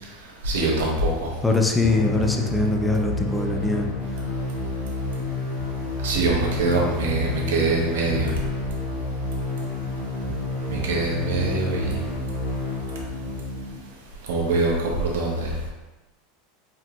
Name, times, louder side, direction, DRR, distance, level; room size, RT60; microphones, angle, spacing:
voice 1, 0.4-1.3 6.0-8.3 10.7-11.9 14.3-15.5, right 3 dB, 80° right, -2 dB, 1.1 m, -23 dB
voice 2, 1.4-3.9 4.2-4.3, left 2 dB, 10° left, 2 dB, 0.5 m, -22 dB
sound 1, 1.8-13.8, left 2 dB, 60° left, 1.4 m, -29 dB
4.5 x 3.6 x 2.4 m, 1.1 s
supercardioid pair, 110°, 0 cm